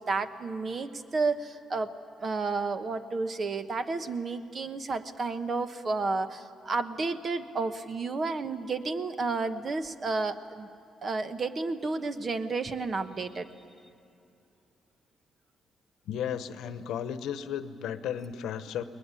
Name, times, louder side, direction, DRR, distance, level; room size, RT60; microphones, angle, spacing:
voice 1, 0.0-1.9 2.2-10.7 11.0-13.5, right 3 dB, 40° right, 10 dB, 1.2 m, -31 dB
voice 2, 16.1-18.8, left 9 dB, 80° left, 11 dB, 1.0 m, -34 dB
22.0 x 20.0 x 9.8 m, 2.7 s
cardioid pair, 90°, 0 cm